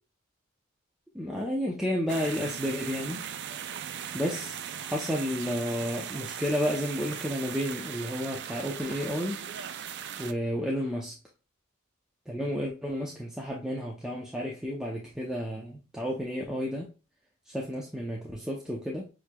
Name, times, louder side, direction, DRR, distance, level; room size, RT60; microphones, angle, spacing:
voice 1, 1.1-3.2 4.1-9.4 10.2-11.2 12.3-16.9 17.5-19.1, equal, 5° right, 0.5 m, -31 dB
sound 1, 2.1-10.3, right 9 dB, 55° right, 0.4 m, -38 dB
6.4 x 3.0 x 2.2 m
head